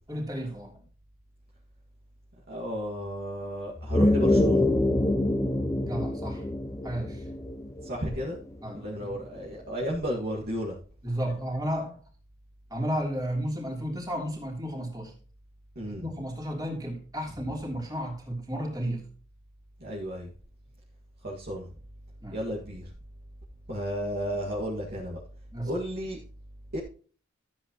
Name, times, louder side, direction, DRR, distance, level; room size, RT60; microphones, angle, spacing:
voice 1, 0.1-0.8 5.8-6.4 6.8-7.3 8.6-9.2 11.0-12.0 12.7-15.1 16.0-19.1 22.2-22.4 25.5-25.7, equal, 20° right, -2 dB, 3.2 m, -33 dB
voice 2, 2.5-4.7 7.8-8.4 8.7-10.7 15.8-16.1 19.8-20.3 21.2-21.7 22.3-22.9 23.7-25.2 25.6-26.2 26.7-26.8, equal, 50° right, -4 dB, 2.0 m, -33 dB
sound 1, 3.8-8.6, left 1 dB, 15° left, 0.6 m, -25 dB
13.5 x 8.3 x 3.0 m, 0.40 s
head